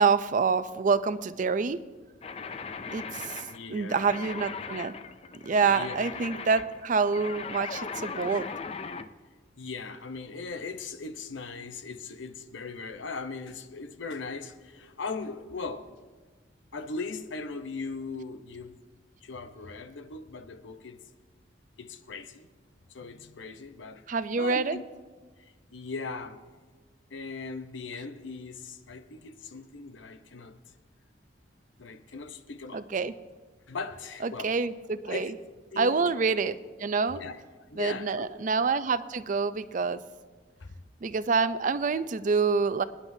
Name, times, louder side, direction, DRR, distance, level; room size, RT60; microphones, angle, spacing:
voice 1, 0.0-1.8 2.9-3.4 3.7-4.9 5.4-8.5 24.1-24.8 32.7-33.1 34.2-35.3 35.8-37.2 37.8-40.0 41.0-42.8, right 5 dB, 45° right, 0.4 m, -27 dB
sound 1, 2.2-9.1, left 5 dB, 30° left, 0.4 m, -39 dB
voice 2, 3.5-4.1 5.7-6.0 9.6-15.9 16.7-18.8 19.2-21.0 21.8-22.5 22.9-24.0 24.4-24.8 25.4-26.4 27.1-30.6 31.8-32.8 33.7-34.5 35.0-35.3 35.7-36.1 37.1-37.4 37.7-38.3 40.6-40.8, left 4 dB, 90° left, 0.8 m, -39 dB
26.5 x 9.8 x 2.7 m
head